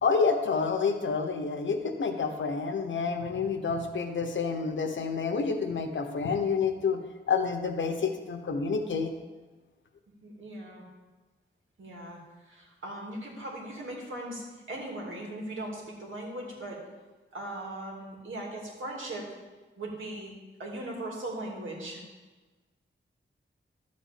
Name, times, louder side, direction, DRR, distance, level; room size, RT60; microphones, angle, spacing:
voice 1, 0.0-7.0 7.3-9.1, left 5 dB, 70° left, 5 dB, 1.1 m, -28 dB
voice 2, 10.2-10.8 11.8-16.8 17.3-19.3 19.8-20.3 20.6-22.0, right 1 dB, 75° right, -2 dB, 2.7 m, -39 dB
12.0 x 4.3 x 7.7 m, 1.2 s
wide cardioid pair, 140°, 20 cm